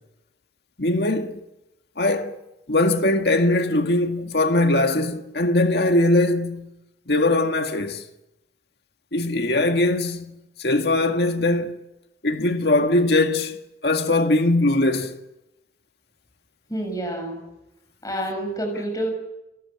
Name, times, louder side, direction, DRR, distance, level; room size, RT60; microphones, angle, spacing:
voice 1, 0.8-1.4 2.0-2.4 2.7-6.7 7.1-8.0 9.1-11.8 12.2-13.6 13.8-15.1, left 2 dB, 65° left, 1.9 m, -21 dB
voice 2, 16.7-17.4 18.0-19.1, right 1 dB, 20° left, 6.8 m, -28 dB
29.5 x 17.0 x 8.7 m
head